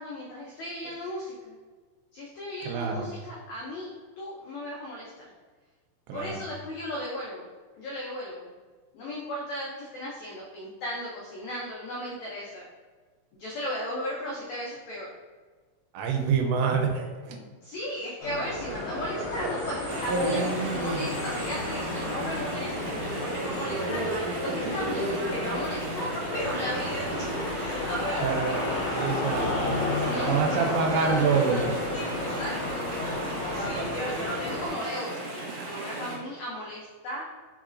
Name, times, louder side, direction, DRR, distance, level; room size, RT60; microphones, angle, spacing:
voice 1, 0.0-1.6 2.1-3.9 4.2-5.2 6.1-7.5 7.8-8.5 8.9-12.6 13.3-15.1 17.6-28.9 29.9-31.8 32.2-32.8 33.5-37.2, equal, 85° left, -4 dB, 1.6 m, -36 dB
voice 2, 2.6-3.1 6.1-6.4 15.9-17.4 18.7-18.8 28.2-29.5 30.1-31.7 33.6-33.9, right 5 dB, 85° right, 3 dB, 2.3 m, -27 dB
sound 1, 18.2-34.7, left 2 dB, 60° left, 1.7 m, -33 dB
Chatter / Stream, 19.9-36.2, right 1 dB, 65° right, 1.7 m, -34 dB
4.6 x 4.0 x 2.5 m, 1.4 s
omnidirectional pair, 4.1 m